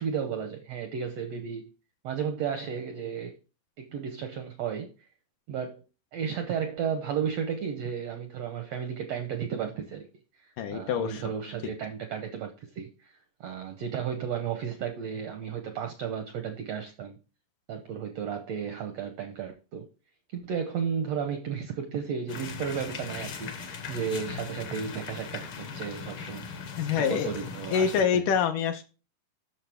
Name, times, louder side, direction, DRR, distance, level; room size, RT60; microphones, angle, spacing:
voice 1, 0.0-1.6 2.0-3.4 3.8-4.9 5.5-5.8 6.1-10.1 10.4-17.2 17.7-19.9 20.3-26.5 27.0-28.2, right 7 dB, 80° right, 1.5 m, -33 dB
voice 2, 10.6-11.2 26.8-27.4 27.7-28.8, left 7 dB, 80° left, 2.2 m, -26 dB
sound 1, 22.3-28.0, left 6 dB, 60° left, 1.5 m, -39 dB
9.0 x 6.5 x 3.4 m
omnidirectional pair, 4.0 m